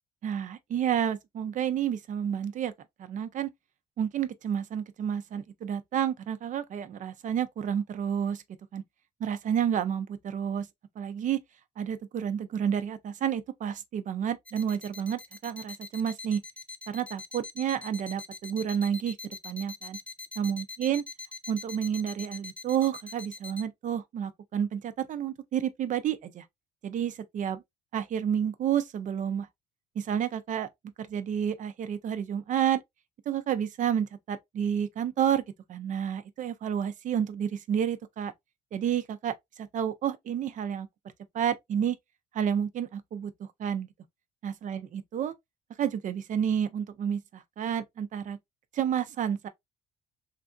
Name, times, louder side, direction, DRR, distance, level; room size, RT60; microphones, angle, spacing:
voice 1, 0.2-2.7 3.0-3.5 4.0-8.4 8.7-8.8 9.2-10.7 11.0-11.4 11.8-16.4 16.9-20.0 20.4-21.0 21.5-26.4 26.8-27.6 27.9-29.5 30.0-30.7 31.0-32.8 33.3-35.4 35.7-38.3 38.7-40.9 41.3-42.0 42.3-43.9 44.4-45.3 45.8-48.4 48.7-49.5, right 9 dB, 50° right, 0.5 m, -30 dB
sound 1, 14.5-23.6, left 3 dB, 5° left, 0.3 m, -42 dB
3.3 x 2.5 x 2.3 m
cardioid pair, 110°, 17 cm